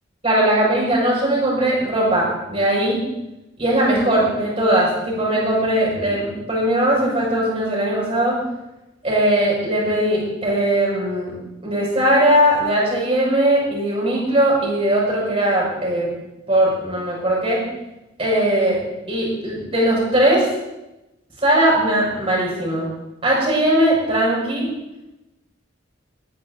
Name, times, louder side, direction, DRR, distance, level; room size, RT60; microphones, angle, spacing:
voice 1, 0.2-3.0 3.6-8.4 9.0-11.3 11.6-16.1 16.5-17.6 18.2-18.8 19.1-20.5 21.4-22.9 23.2-24.7, right 1 dB, 30° right, -5 dB, 6.1 m, -19 dB
18.5 x 10.0 x 3.9 m, 0.96 s
head